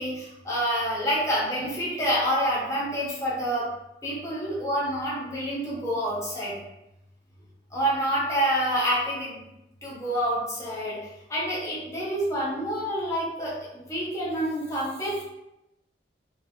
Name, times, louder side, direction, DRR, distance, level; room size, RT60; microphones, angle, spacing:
voice 1, 0.0-3.7 4.0-6.5 7.7-9.4 9.8-11.0 11.3-15.2, equal, 15° left, -7 dB, 0.7 m, -27 dB
3.0 x 2.1 x 2.5 m, 0.89 s
head